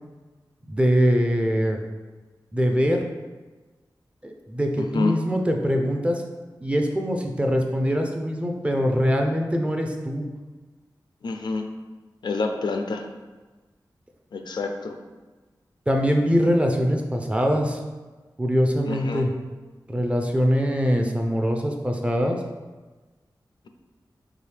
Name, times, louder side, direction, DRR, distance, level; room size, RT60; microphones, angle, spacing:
voice 1, 0.7-1.8 2.5-3.0 4.2-6.2 6.6-10.3 15.9-17.8 18.4-19.3 19.9-22.4, equal, 15° right, 3 dB, 0.4 m, -23 dB
voice 2, 4.8-5.1 11.2-11.7 12.2-13.1 14.3-15.0 18.9-19.3, left 3 dB, 75° left, 5 dB, 0.4 m, -27 dB
4.8 x 2.7 x 3.3 m, 1.3 s
wide cardioid pair, 100°, 8 cm